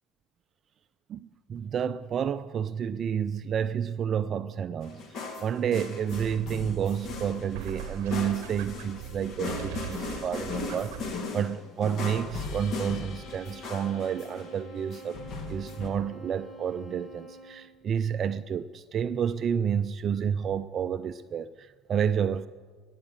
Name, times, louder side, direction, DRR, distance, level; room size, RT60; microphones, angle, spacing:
voice 1, 1.1-5.0 5.4-15.2 15.5-22.5, right 8 dB, 40° right, 0.4 m, -30 dB
sound 1, 4.8-15.9, left 3 dB, 45° left, 1.9 m, -37 dB
sound 2, 6.1-11.2, right 11 dB, 60° right, 0.8 m, -41 dB
sound 3, 12.9-17.8, right 1 dB, 15° left, 2.7 m, -47 dB
20.5 x 7.5 x 7.9 m
figure-of-eight pair, 65°, 0 cm